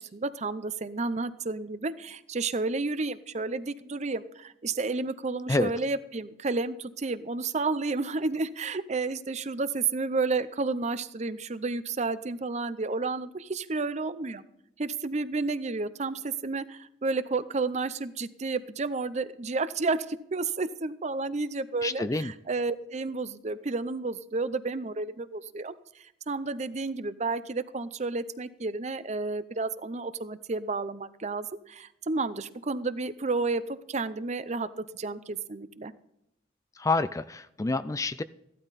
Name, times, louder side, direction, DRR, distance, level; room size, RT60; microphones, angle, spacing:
voice 1, 0.0-14.4 14.8-35.9, right 3 dB, 40° right, 14 dB, 0.6 m, -31 dB
voice 2, 21.8-22.3 36.8-38.2, left 3 dB, 20° left, 13 dB, 0.4 m, -28 dB
15.0 x 12.0 x 4.2 m, 0.80 s
head